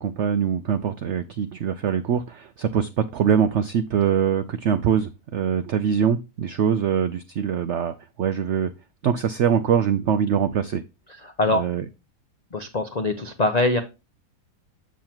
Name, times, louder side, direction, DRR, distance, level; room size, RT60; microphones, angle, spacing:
voice 1, 0.0-8.7 9.0-10.8 11.5-11.8, right 8 dB, 85° right, 11 dB, 0.6 m, -23 dB
voice 2, 11.2-11.6 12.5-13.8, left 2 dB, 70° left, 6 dB, 0.4 m, -23 dB
7.4 x 7.1 x 2.9 m, 0.28 s
omnidirectional pair, 1.8 m